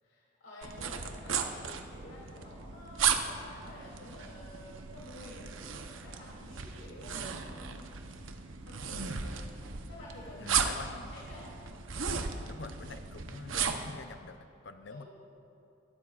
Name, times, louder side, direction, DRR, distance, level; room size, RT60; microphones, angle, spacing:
voice 1, 0.0-5.5 5.8-7.8 8.6-9.2 9.9-10.8 11.1-11.5 14.9-15.1, left 1 dB, 85° left, -6 dB, 3.0 m, -50 dB
sound 1, 0.6-14.0, right 6 dB, 85° right, 0.8 m, -36 dB
voice 2, 10.4-11.2 12.4-14.4 14.6-15.1, left 4 dB, 60° left, 8 dB, 0.6 m, -46 dB
22.0 x 12.5 x 2.4 m, 2.9 s
head